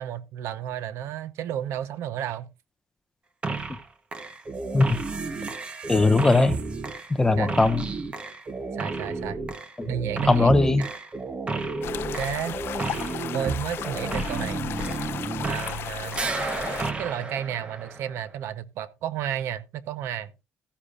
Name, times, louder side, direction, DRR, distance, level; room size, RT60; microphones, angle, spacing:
voice 1, 0.0-2.5 7.4-7.5 8.7-9.4 9.9-10.9 12.1-12.6 13.3-14.6 15.4-16.2 17.0-20.3, right 10 dB, 70° right, 0.9 m, -32 dB
sound 1, 3.4-3.8 4.1-15.9 16.1-18.3, right 4 dB, 25° right, 1.1 m, -32 dB
voice 2, 5.9-6.6 7.2-7.9 9.8-9.9 10.3-10.8, left 3 dB, 10° left, 0.7 m, -20 dB
sound 2, 11.8-16.9, left 10 dB, 50° left, 0.6 m, -34 dB
14.0 x 9.9 x 2.5 m
cardioid pair, 155°, 5 cm